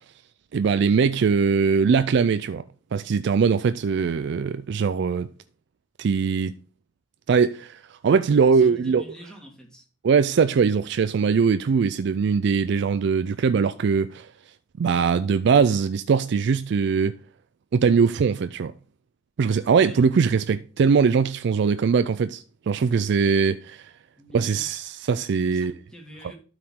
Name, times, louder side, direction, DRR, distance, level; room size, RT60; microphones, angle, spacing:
voice 1, 0.5-2.6 2.9-5.3 6.0-6.5 7.3-9.0 10.0-14.3 14.8-17.2 17.7-18.7 19.4-23.9 24.3-25.7, right 5 dB, 65° right, 0.4 m, -21 dB
voice 2, 8.5-9.9 19.7-20.0 24.2-24.6 25.4-26.3, equal, 5° left, 2.3 m, -46 dB
12.0 x 4.9 x 3.7 m
head